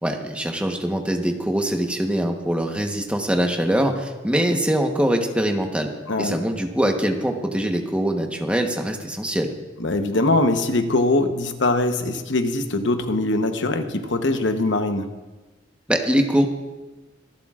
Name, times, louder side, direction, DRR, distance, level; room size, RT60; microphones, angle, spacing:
voice 1, 0.0-5.9 6.2-9.5 15.9-16.5, equal, 5° right, 3 dB, 1.1 m, -23 dB
voice 2, 9.8-15.1, left 2 dB, 75° left, 7 dB, 1.0 m, -22 dB
25.0 x 11.5 x 2.5 m, 1.2 s
head